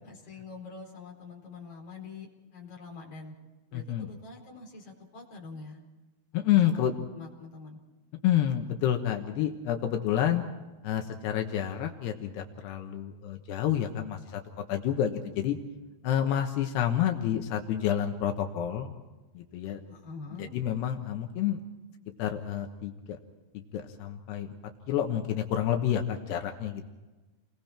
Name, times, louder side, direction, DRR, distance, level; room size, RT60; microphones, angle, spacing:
voice 1, 0.0-3.4 3.7-5.8 6.3-6.8 7.1-7.8 19.9-20.5, left 4 dB, 35° left, -1 dB, 5.1 m, -45 dB
voice 2, 3.7-4.1 6.3-6.9 8.2-10.4 10.8-14.4 14.7-15.6 16.0-18.9 19.3-19.8 20.4-21.6 22.2-23.2 23.7-24.6 24.9-26.8, left 10 dB, 85° left, 4 dB, 3.3 m, -29 dB
29.5 x 22.0 x 4.4 m, 1.2 s
omnidirectional pair, 4.7 m